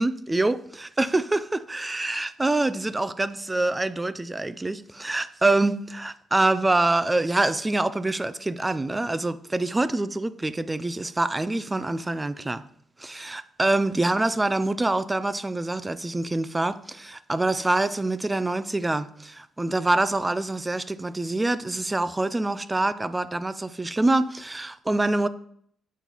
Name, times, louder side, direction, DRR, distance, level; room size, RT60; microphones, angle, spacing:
voice 1, 0.0-12.6 13.0-25.3, right 2 dB, 15° right, 0.3 m, -25 dB
8.2 x 4.5 x 4.0 m
cardioid pair, 135°, 0 cm